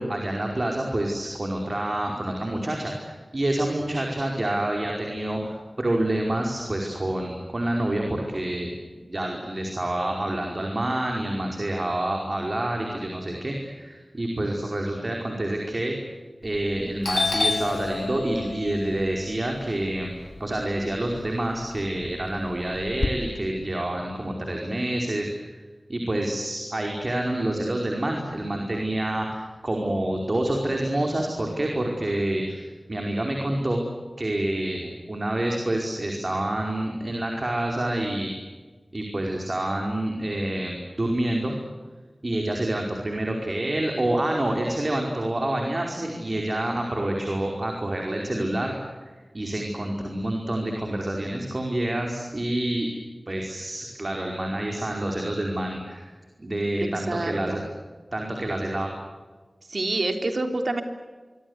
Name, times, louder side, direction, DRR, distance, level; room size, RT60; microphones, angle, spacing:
voice 1, 0.0-8.7 9.1-15.9 16.4-20.1 20.4-25.3 25.9-33.8 34.2-38.3 38.9-41.5 42.2-48.7 49.3-52.9 53.3-56.1 56.4-57.6 58.1-58.9, right 1 dB, 40° right, 1 dB, 5.0 m, -27 dB
Doorbell, 16.5-16.7 17.0-21.2 21.5-23.1, left 3 dB, 70° left, 2.3 m, -29 dB
voice 2, 56.8-57.6 59.7-60.8, right 2 dB, 65° right, 6 dB, 3.8 m, -27 dB
26.0 x 24.0 x 8.2 m, 1.4 s
wide cardioid pair, 75°, 0 cm